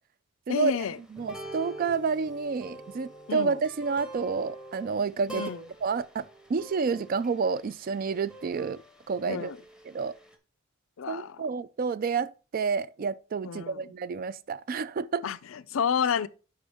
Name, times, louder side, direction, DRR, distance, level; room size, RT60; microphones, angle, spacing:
voice 1, 0.5-1.0 3.3-3.6 5.3-5.6 9.3-9.6 11.0-11.5 13.4-13.9 15.2-16.3, left 7 dB, 80° left, 0.4 m, -30 dB
sound 1, 0.8-10.4, right 1 dB, 5° right, 0.8 m, -46 dB
voice 2, 1.1-5.4 5.8-8.8 9.1-9.5 9.9-10.1 11.1-15.3, right 5 dB, 45° right, 0.3 m, -29 dB
10.5 x 3.8 x 3.5 m
head